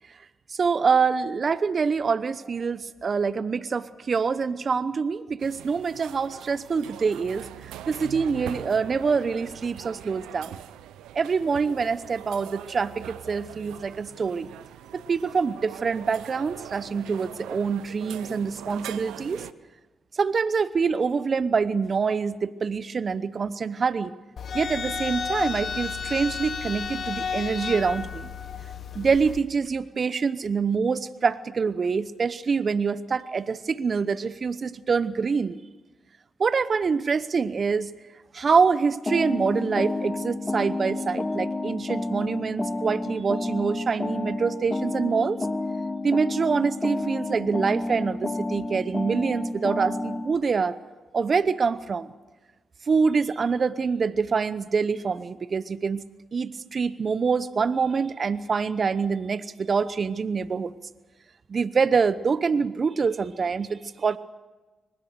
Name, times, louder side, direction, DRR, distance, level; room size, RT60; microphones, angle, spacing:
voice 1, 0.5-7.5 7.9-10.6 11.1-14.5 15.1-19.4 20.1-24.1 24.5-28.3 28.9-35.6 36.4-37.9 38.3-45.4 46.0-50.7 51.1-52.1 52.9-56.0 56.3-60.7 61.5-64.2, right 5 dB, 50° right, 16 dB, 0.8 m, -25 dB
sound 1, 5.4-19.5, right 12 dB, 90° right, 0.7 m, -42 dB
sound 2, 24.4-29.4, left 5 dB, 60° left, 1.5 m, -32 dB
sound 3, 39.1-50.3, left 2 dB, 30° left, 2.0 m, -30 dB
23.0 x 20.5 x 6.8 m, 1.2 s
supercardioid pair, 55°, 0 cm